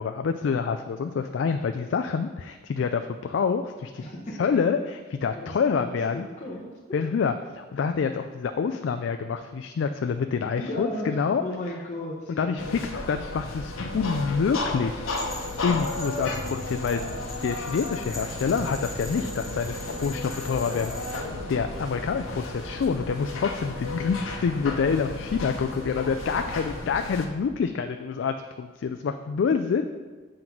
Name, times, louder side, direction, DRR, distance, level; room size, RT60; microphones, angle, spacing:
voice 1, 0.0-4.0 4.4-6.3 6.9-11.4 12.4-15.1 15.6-17.0 17.4-21.2 21.5-29.9, left 5 dB, 65° left, 7 dB, 0.3 m, -27 dB
voice 2, 5.3-6.7 10.6-12.8, left 1 dB, 35° left, -6 dB, 0.9 m, -35 dB
sound 1, 12.6-27.3, left 2 dB, 90° left, 0.9 m, -34 dB
sound 2, 15.1-21.2, left 1 dB, ahead, 1.2 m, -42 dB
sound 3, 17.1-27.0, right 2 dB, 45° right, 0.5 m, -46 dB
7.6 x 3.9 x 5.9 m, 1.3 s
head